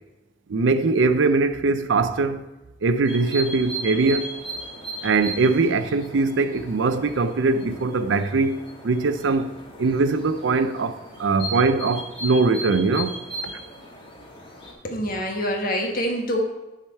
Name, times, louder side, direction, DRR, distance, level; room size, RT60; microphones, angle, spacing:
voice 1, 0.5-2.4 2.8-4.4 5.0-9.5 9.8-13.1, right 3 dB, 80° right, 0.5 m, -21 dB
sound 1, 3.0-14.7, right 1 dB, 30° left, 1.7 m, -37 dB
voice 2, 14.8-16.4, equal, 50° left, 1.3 m, -25 dB
10.5 x 4.9 x 4.3 m
head